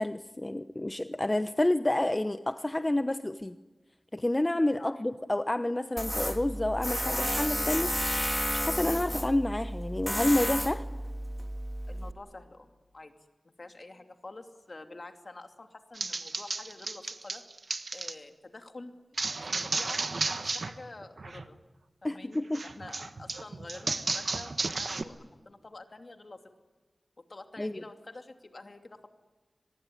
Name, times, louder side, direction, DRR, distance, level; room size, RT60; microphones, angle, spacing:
voice 1, 0.0-3.6 4.1-10.8 22.0-22.6 27.6-27.8, left 1 dB, 30° left, 10 dB, 0.9 m, -29 dB
Tools, 6.0-12.1, equal, 10° left, 1.9 m, -32 dB
voice 2, 11.9-13.1 13.4-17.4 17.9-18.9 19.6-21.6 22.0-26.4 27.3-29.1, left 2 dB, 55° left, 6 dB, 2.7 m, -48 dB
sound 1, 16.0-18.1 19.2-20.7 21.0-21.5 22.5-25.0, right 3 dB, 70° right, 1.4 m, -33 dB
24.0 x 21.0 x 9.9 m, 1.3 s
cardioid pair, 45°, 0 cm